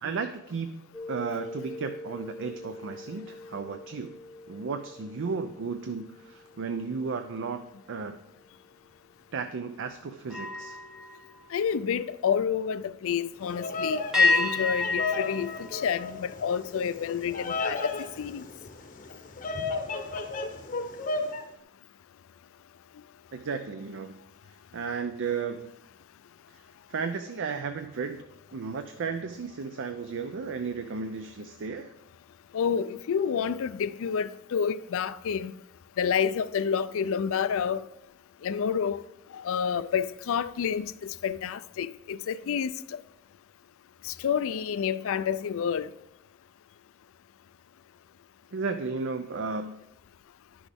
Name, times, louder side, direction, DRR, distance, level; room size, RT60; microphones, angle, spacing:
voice 1, 0.0-4.2 4.5-7.6 7.9-8.2 9.3-10.8 23.3-24.2 24.7-25.7 26.9-28.2 28.5-31.9 48.5-49.7, right 5 dB, 60° right, 0.5 m, -34 dB
sound 1, 0.9-6.5 7.0-7.3 10.2-12.4 14.1-16.7, left 3 dB, 5° right, 0.9 m, -32 dB
voice 2, 11.5-18.4 32.5-35.5 36.0-37.8 38.4-39.0 39.3-43.0 44.0-45.9, left 7 dB, 70° left, 0.4 m, -29 dB
Bird vocalization bird call bird song, 13.4-21.4, left 3 dB, 40° left, 0.8 m, -34 dB
11.0 x 6.1 x 3.5 m
head